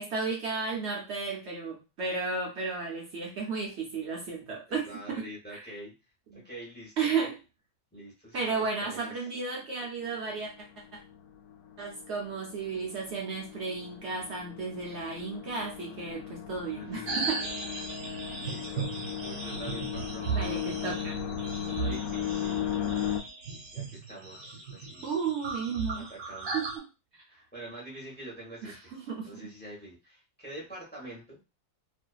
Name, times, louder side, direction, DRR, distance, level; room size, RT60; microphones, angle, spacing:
voice 1, 0.0-5.3 5.5-5.6 6.3-6.4 7.0-7.4 8.3-10.5 10.9-11.0 11.8-17.4 20.3-21.3 25.0-26.1 26.5-26.8 28.6-29.5, right 4 dB, 60° right, -1 dB, 0.9 m, -33 dB
voice 2, 4.7-5.9 6.3-7.1 7.9-9.1 16.7-17.3 18.4-18.9 19.2-20.7 21.7-22.7 23.7-25.1 25.9-26.7 27.3-28.9 29.2-31.4, right 1 dB, 10° left, -4 dB, 0.7 m, -45 dB
sound 1, 10.0-23.2, left 10 dB, 80° left, 1.0 m, -37 dB
sound 2, 17.1-26.8, right 4 dB, 85° right, 1.2 m, -36 dB
2.5 x 2.3 x 2.3 m, 0.29 s
omnidirectional pair, 1.4 m